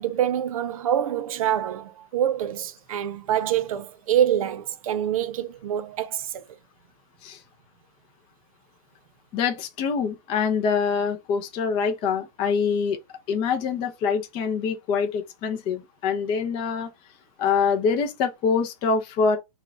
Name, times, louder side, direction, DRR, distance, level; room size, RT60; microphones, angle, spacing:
voice 1, 0.0-6.5, right 10 dB, 55° right, 0.8 m, -26 dB
voice 2, 9.3-13.0 13.3-16.9 17.4-19.4, left 5 dB, 25° left, 0.7 m, -25 dB
4.5 x 2.4 x 4.4 m
hypercardioid pair, 150°, 21 cm